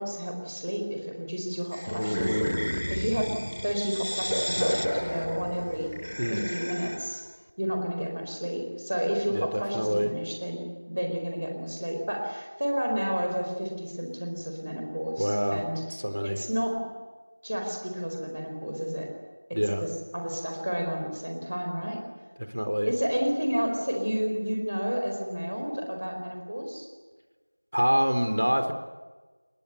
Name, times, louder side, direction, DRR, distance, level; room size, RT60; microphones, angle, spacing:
voice 1, 0.0-3.3 3.6-5.9 6.3-7.2 7.6-15.8 16.2-16.8 17.4-19.1 19.5-22.0 22.8-26.9, equal, 25° right, 2 dB, 4.5 m, -31 dB
sound 1, 1.7-7.2, equal, 80° left, 2.2 m, -31 dB
voice 2, 6.2-6.5 9.3-10.1 15.2-16.4 19.5-19.9 22.4-22.9 27.7-28.7, equal, 85° right, 8 dB, 3.8 m, -27 dB
29.0 x 21.5 x 8.3 m, 1.3 s
figure-of-eight pair, 180°, 0 cm